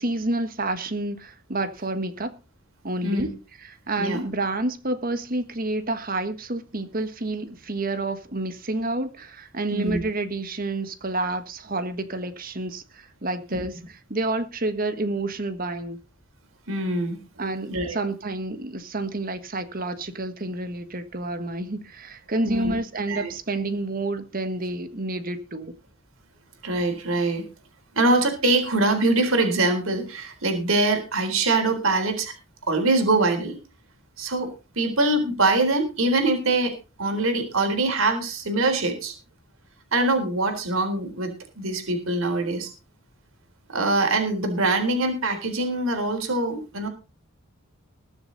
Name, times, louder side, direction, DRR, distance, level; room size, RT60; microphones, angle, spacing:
voice 1, 0.0-2.3 2.8-3.3 3.6-16.0 17.4-25.7, right 2 dB, 45° right, 1.5 m, -29 dB
voice 2, 16.7-17.2 17.7-18.0 22.4-22.7 23.1-23.3 26.6-27.4 28.0-32.3 32.7-33.6 34.2-34.5 34.8-36.7 37.0-39.1 39.9-42.7 43.7-46.9, right 2 dB, 85° right, 3.8 m, -23 dB
21.0 x 7.1 x 4.0 m
head